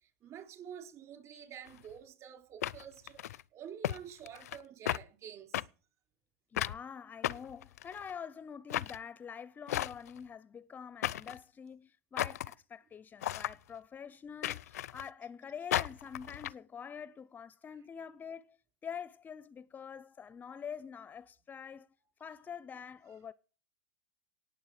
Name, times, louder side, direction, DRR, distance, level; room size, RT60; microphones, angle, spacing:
voice 1, 0.2-5.6, right 8 dB, 40° right, 3.7 m, -49 dB
sound 1, 1.7-1.8 2.6-3.4 3.8-4.0 4.3-4.6 4.9-5.0 5.5-5.6 6.6-6.8 7.2-8.1 8.7-9.0 9.7-10.2 11.0-11.4 12.2-12.5 13.2-13.5 14.4-15.1 15.7-16.5, left 13 dB, 80° left, 0.5 m, -34 dB
voice 2, 6.5-18.6 18.8-21.9 22.2-23.3, left 7 dB, 20° left, 0.5 m, -46 dB
18.5 x 7.1 x 4.9 m
hypercardioid pair, 110°, 8 cm